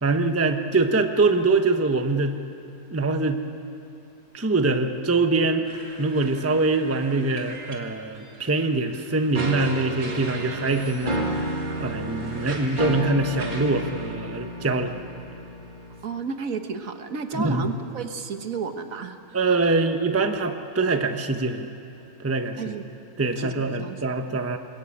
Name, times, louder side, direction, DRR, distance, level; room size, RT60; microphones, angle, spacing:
voice 1, 0.0-2.4 2.9-3.4 4.3-5.6 6.0-15.0 17.3-17.7 19.3-21.7 22.2-22.8 23.2-24.6, right 3 dB, 10° right, 6 dB, 0.9 m, -24 dB
sound 1, 5.6-14.2, right 2 dB, 85° right, 3.2 m, -41 dB
sound 2, 9.3-16.2, right 1 dB, 30° right, 2.2 m, -31 dB
voice 2, 16.0-19.4 22.6-22.9 23.4-24.0, right 5 dB, 60° right, 7 dB, 1.6 m, -32 dB
27.0 x 21.5 x 8.7 m, 2.8 s
omnidirectional pair, 1.6 m